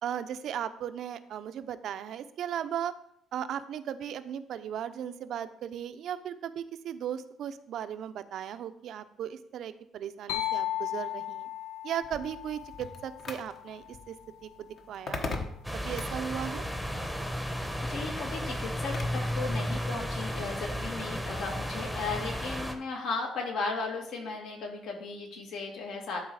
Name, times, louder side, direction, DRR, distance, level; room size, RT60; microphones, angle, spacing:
voice 1, 0.0-2.9 3.3-11.5 11.8-14.2 14.4-15.3 15.7-16.6, right 9 dB, 60° right, 11 dB, 0.5 m, -37 dB
sound 1, 10.3-14.0, left 12 dB, 90° left, 0.9 m, -36 dB
sound 2, 12.0-19.3, left 3 dB, 45° left, 1.0 m, -41 dB
sound 3, 15.6-22.7, equal, 5° left, 0.9 m, -33 dB
voice 2, 17.9-26.2, left 3 dB, 75° left, 0 dB, 2.3 m, -36 dB
11.5 x 4.0 x 4.8 m, 0.72 s
cardioid pair, 140°, 0 cm